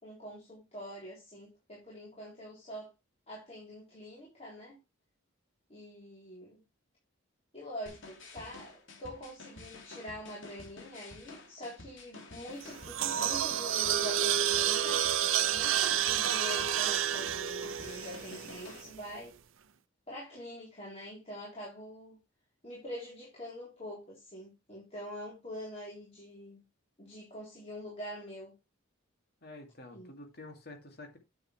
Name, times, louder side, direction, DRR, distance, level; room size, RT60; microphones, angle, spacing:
voice 1, 0.0-2.9 3.3-4.8 5.7-6.6 7.5-15.0 15.5-19.4 20.1-22.2 22.6-26.6 27.0-28.6 29.9-30.1, equal, 30° left, 3.4 m, -45 dB
sound 1, 7.9-18.8, left 3 dB, 70° left, 2.6 m, -50 dB
sound 2, 12.6-18.9, right 10 dB, 80° right, 0.7 m, -30 dB
voice 2, 29.4-31.2, left 2 dB, 50° left, 2.4 m, -48 dB
9.6 x 7.1 x 3.2 m
head